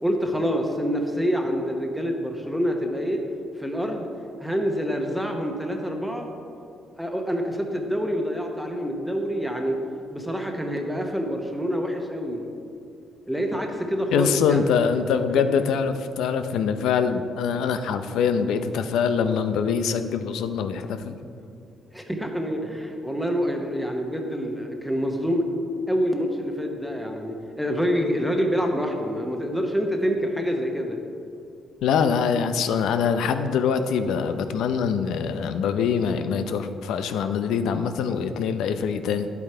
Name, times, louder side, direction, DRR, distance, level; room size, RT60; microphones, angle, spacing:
voice 1, 0.0-3.2 3.6-4.1 4.4-6.3 7.0-9.8 10.1-12.4 13.3-14.7 15.3-15.4 21.9-25.5 25.9-31.0, equal, ahead, 2 dB, 1.1 m, -26 dB
voice 2, 14.1-21.2 31.8-39.3, left 6 dB, 85° left, 9 dB, 0.6 m, -24 dB
10.0 x 8.4 x 4.4 m, 2.6 s
cardioid pair, 90°, 0 cm